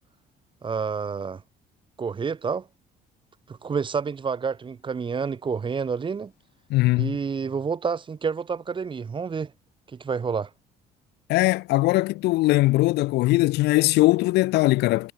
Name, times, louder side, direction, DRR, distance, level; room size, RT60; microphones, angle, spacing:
voice 1, 0.6-1.4 2.0-2.7 3.5-6.3 7.0-9.5 9.9-10.5, right 5 dB, 30° right, 1.3 m, -29 dB
voice 2, 6.7-7.2 11.3-15.1, left 19 dB, 85° left, 0.9 m, -20 dB
cardioid pair, 110°, 17 cm